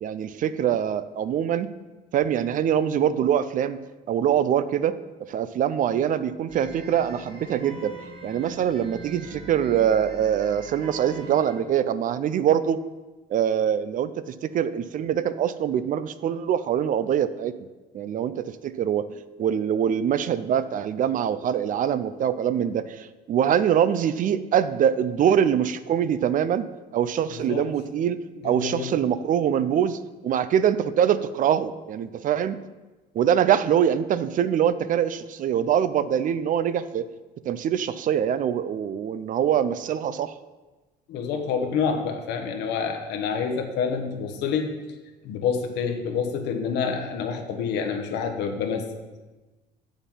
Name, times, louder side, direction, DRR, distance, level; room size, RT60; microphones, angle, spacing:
voice 1, 0.0-1.7 2.1-3.8 4.1-8.0 8.2-12.8 13.3-17.5 17.9-26.7 26.9-28.2 28.4-32.6 33.1-37.1 37.5-40.3, right 9 dB, 50° right, 14 dB, 0.5 m, -24 dB
sound 1, 6.5-11.6, right 3 dB, 35° right, 1.6 m, -42 dB
voice 2, 27.3-27.7 28.4-28.9 41.1-44.7 45.2-48.9, left 6 dB, 85° left, 5 dB, 1.3 m, -27 dB
7.3 x 7.1 x 5.5 m, 1.2 s
cardioid pair, 110°, 17 cm